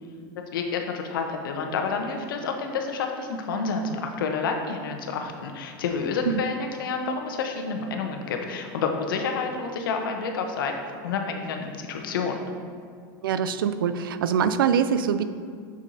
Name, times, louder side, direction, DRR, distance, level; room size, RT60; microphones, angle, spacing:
voice 1, 0.5-10.7 11.0-12.4, left 5 dB, 80° left, 4 dB, 0.9 m, -29 dB
voice 2, 13.2-15.2, right 7 dB, 90° right, 12 dB, 0.4 m, -23 dB
7.2 x 6.3 x 2.7 m, 2.2 s
hypercardioid pair, 105°, 11 cm